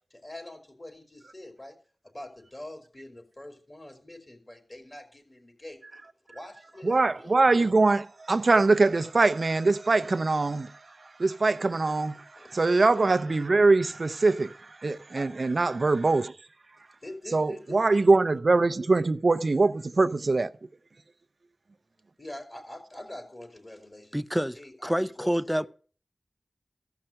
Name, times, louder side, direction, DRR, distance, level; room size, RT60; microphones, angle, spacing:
voice 1, 0.1-1.8 2.1-6.0 6.3-7.7 12.3-12.5 15.1-15.3 17.0-18.1 22.2-25.3 25.6-25.7, left 1 dB, 35° left, 4.0 m, -45 dB
voice 2, 6.8-10.7 11.2-12.2 12.5-14.5 14.8-16.3 17.3-20.5, right 3 dB, 65° right, 0.6 m, -23 dB
voice 3, 24.1-25.7, equal, 5° right, 0.6 m, -28 dB
15.0 x 5.8 x 7.7 m
wide cardioid pair, 55°, 0 cm